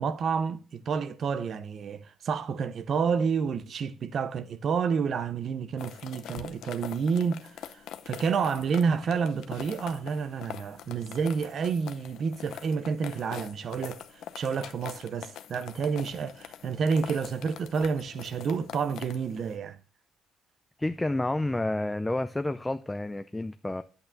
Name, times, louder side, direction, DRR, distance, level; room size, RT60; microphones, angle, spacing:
voice 1, 0.0-14.0 14.4-19.8, right 6 dB, 60° right, 0.6 m, -29 dB
sound 1, 5.8-19.5, left 10 dB, 80° left, 0.6 m, -44 dB
voice 2, 20.8-23.8, left 2 dB, 10° left, 0.4 m, -30 dB
8.7 x 7.9 x 2.6 m
cardioid pair, 90°, 0 cm